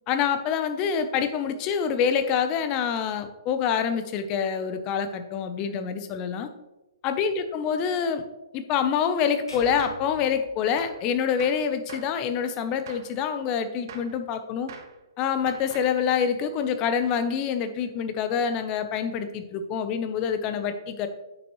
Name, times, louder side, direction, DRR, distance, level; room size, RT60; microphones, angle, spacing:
voice 1, 0.1-6.5 7.0-8.2 8.5-14.7 15.2-21.1, left 7 dB, 25° left, 9 dB, 0.7 m, -26 dB
sound 1, 9.5-11.7, right 1 dB, 70° left, 2.9 m, -46 dB
Gunshot gunfire, 9.8-10.1 10.8-11.1 11.4-12.2 12.9-13.2 13.9-14.2 14.7-15.0 15.5-16.0, right 6 dB, 50° right, 0.9 m, -44 dB
9.2 x 6.0 x 3.1 m, 1.0 s
figure-of-eight pair, 130°, 2 cm